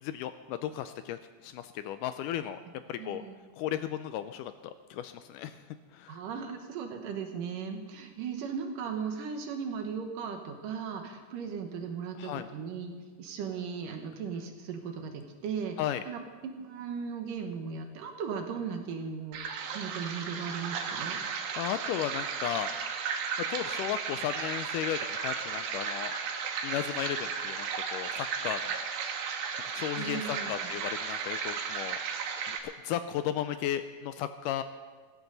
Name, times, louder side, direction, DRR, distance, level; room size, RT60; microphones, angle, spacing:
voice 1, 0.0-2.6 2.9-3.2 3.5-5.6 5.9-6.2 12.2-12.5 15.8-16.0 21.1-22.7 23.5-26.1 26.6-28.8 29.7-32.0 32.5-34.6, left 11 dB, 80° left, 11 dB, 2.0 m, -35 dB
voice 2, 3.0-3.4 6.1-15.8 16.1-16.2 16.6-21.2 30.0-30.7, right 6 dB, 75° right, 5 dB, 2.8 m, -37 dB
sound 1, 19.3-32.6, right 6 dB, 90° right, 3.0 m, -35 dB
17.5 x 15.0 x 4.0 m, 1.5 s
omnidirectional pair, 4.0 m